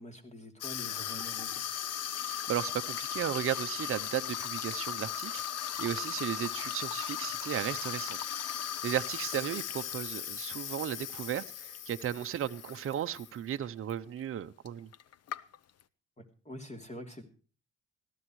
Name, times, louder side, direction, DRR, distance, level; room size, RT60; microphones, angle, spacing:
voice 1, 0.0-1.6 16.2-17.2, equal, 25° left, 2.9 m, -45 dB
Water tap faucet / Sink (filling or washing), 0.6-13.3 13.6-13.9 14.7-14.8 14.9-15.8, left 10 dB, 55° left, 0.8 m, -37 dB
voice 2, 2.2-8.5 8.8-14.9, right 10 dB, 45° right, 0.7 m, -35 dB
20.5 x 14.0 x 3.1 m
cardioid pair, 90°, 30 cm